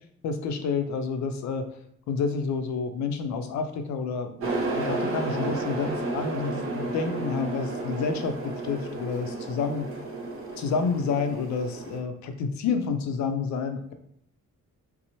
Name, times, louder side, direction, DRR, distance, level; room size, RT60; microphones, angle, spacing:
voice 1, 0.2-1.7 2.1-4.5 4.7-8.4 8.6-9.9 10.6-13.9, left 5 dB, 70° left, 7 dB, 0.5 m, -29 dB
sound 1, 4.4-12.0, right 2 dB, 45° right, 0.7 m, -32 dB
2.8 x 2.0 x 2.7 m, 0.68 s
cardioid pair, 90°, 30 cm